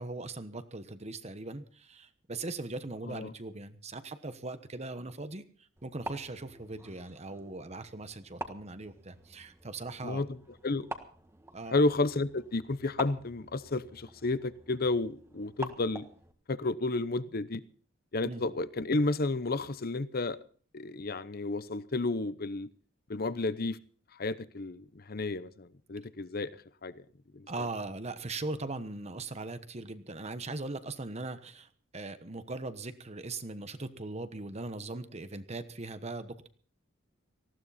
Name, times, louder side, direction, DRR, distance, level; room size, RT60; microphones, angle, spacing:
voice 1, 0.0-5.4 5.8-10.2 11.5-11.8 18.2-18.4 27.5-36.5, right 2 dB, 35° right, 1.2 m, -40 dB
sound 1, 5.8-16.3, right 2 dB, 15° right, 1.5 m, -47 dB
voice 2, 11.7-16.0 16.5-17.6 18.1-20.4 20.7-22.7 23.1-23.8 24.2-26.5 26.8-26.9 27.3-27.7, left 2 dB, 50° left, 0.8 m, -31 dB
19.0 x 15.5 x 4.2 m
head